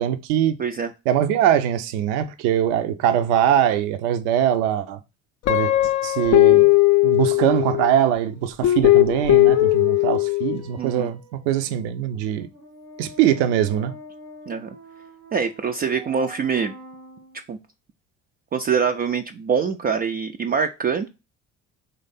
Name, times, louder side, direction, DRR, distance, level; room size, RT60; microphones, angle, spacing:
voice 1, 0.0-0.6 1.1-5.0 5.5-5.7 6.0-6.7 7.0-12.5 13.0-13.9, right 10 dB, 60° right, 0.6 m, -22 dB
voice 2, 0.6-0.9 10.8-11.1 14.5-14.7 15.3-16.7 17.5-17.6 18.5-21.1, right 6 dB, 25° right, 0.4 m, -24 dB
Guitar, 5.5-7.9 8.6-10.6, left 17 dB, 40° left, 0.5 m, -17 dB
sound 1, 8.0-17.4, equal, 90° right, 1.0 m, -45 dB
3.9 x 3.2 x 4.0 m
figure-of-eight pair, 55°, 39 cm